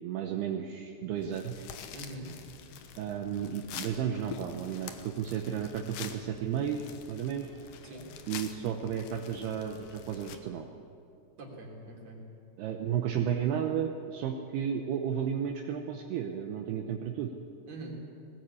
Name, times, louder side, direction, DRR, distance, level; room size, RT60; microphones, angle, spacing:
voice 1, 0.0-1.5 3.0-6.8 7.1-7.5 8.3-10.7 12.6-17.3, right 8 dB, 75° right, 4 dB, 2.7 m, -33 dB
sound 1, 1.2-10.4, left 8 dB, 70° left, 2.5 m, -46 dB
voice 2, 1.9-2.3 7.8-8.1 11.4-12.2 17.7-17.9, right 2 dB, 40° right, -1 dB, 4.1 m, -43 dB
20.5 x 18.0 x 8.4 m, 2.7 s
omnidirectional pair, 5.1 m